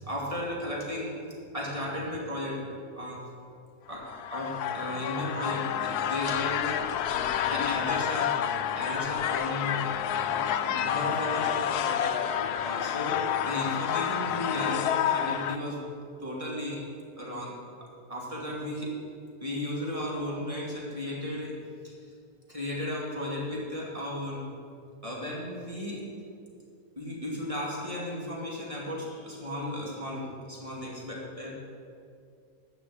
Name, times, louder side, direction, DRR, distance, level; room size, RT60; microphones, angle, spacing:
voice 1, 0.0-2.6 3.0-3.2 3.9-6.8 7.4-8.3 8.7-9.8 10.7-15.8 16.2-16.8 17.2-17.6 17.8-18.9 19.4-21.5 21.8-21.9 22.5-24.4 25.0-26.0 27.0-31.5, left 1 dB, 20° right, -4 dB, 2.5 m, -35 dB
sound 1, 4.0-15.6, left 9 dB, 90° left, 1.1 m, -29 dB
11.0 x 6.2 x 8.5 m, 2.3 s
omnidirectional pair, 1.6 m